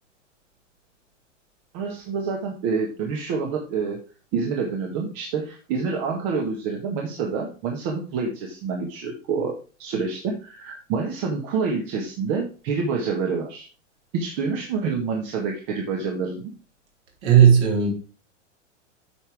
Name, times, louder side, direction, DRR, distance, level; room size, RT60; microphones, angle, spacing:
voice 1, 1.7-4.0 4.3-13.7 14.1-16.5, right 5 dB, 45° right, 1.8 m, -27 dB
voice 2, 17.2-17.9, right 8 dB, 60° right, 4.0 m, -15 dB
9.0 x 6.0 x 3.5 m
hypercardioid pair, 100°, 37 cm